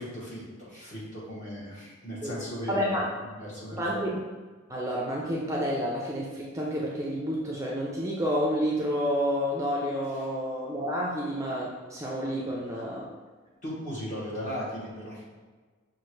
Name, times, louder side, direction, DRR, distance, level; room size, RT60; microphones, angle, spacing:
voice 1, 0.0-2.9 3.4-4.1 13.6-15.2, equal, 40° left, -6 dB, 1.3 m, -37 dB
voice 2, 2.7-3.1 3.8-4.2 4.7-13.0, equal, 15° right, -3 dB, 0.4 m, -29 dB
5.9 x 2.5 x 3.1 m, 1.4 s
head